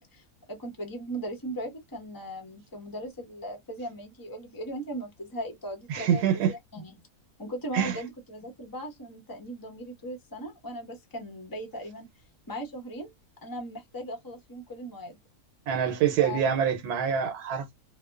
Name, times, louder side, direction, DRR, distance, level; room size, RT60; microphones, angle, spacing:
voice 1, 0.0-7.0 7.4-12.1 12.5-13.1 13.4-15.2 16.2-16.4, right 1 dB, 20° left, 0.7 m, -38 dB
voice 2, 5.9-6.5 7.7-8.0 15.7-17.7, right 8 dB, 85° right, 1.2 m, -25 dB
2.7 x 2.1 x 2.2 m
omnidirectional pair, 1.6 m